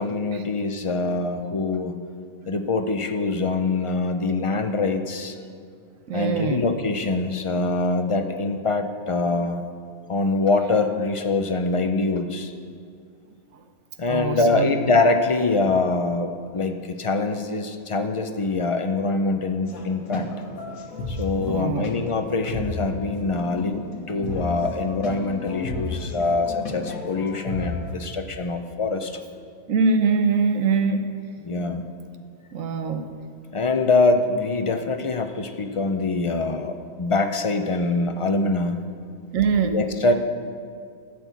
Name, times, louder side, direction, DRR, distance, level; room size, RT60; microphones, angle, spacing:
voice 1, 0.0-2.0 2.5-5.4 6.1-9.6 10.1-12.5 14.0-20.3 21.1-29.2 31.4-31.8 33.5-38.8 39.6-40.1, left 3 dB, 45° left, 6 dB, 0.4 m, -24 dB
voice 2, 6.1-6.6 14.1-14.7 21.4-21.9 29.7-31.1 32.5-33.0 39.3-39.7, right 4 dB, 70° right, 8 dB, 1.2 m, -23 dB
sound 1, 19.7-27.9, left 2 dB, 80° left, 1.7 m, -33 dB
13.0 x 6.1 x 8.2 m, 2.2 s
omnidirectional pair, 1.5 m